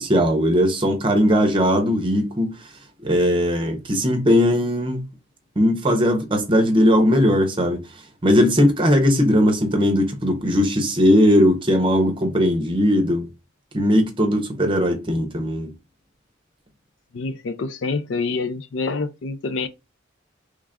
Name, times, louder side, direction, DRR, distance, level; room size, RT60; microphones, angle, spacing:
voice 1, 0.0-2.6 3.0-5.0 5.6-7.8 8.2-13.3 13.7-15.7, equal, 25° right, 0.6 m, -19 dB
voice 2, 17.1-19.7, left 4 dB, 65° left, 0.4 m, -26 dB
3.2 x 2.4 x 3.4 m
head